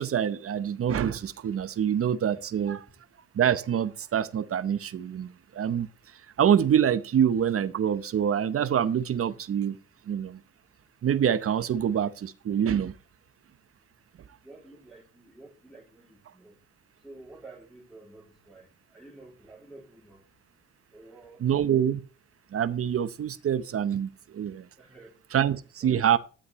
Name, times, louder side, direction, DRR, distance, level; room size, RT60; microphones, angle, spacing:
voice 1, 0.0-2.8 3.3-5.9 6.4-9.8 10.1-10.4 11.0-12.9 21.4-22.0 22.5-24.7 25.3-26.2, right 9 dB, 50° right, 0.8 m, -26 dB
voice 2, 14.4-16.6 17.0-20.2 20.9-21.5 24.8-25.2 25.8-26.0, right 2 dB, ahead, 2.9 m, -50 dB
12.5 x 9.9 x 3.1 m
cardioid pair, 90°, 30 cm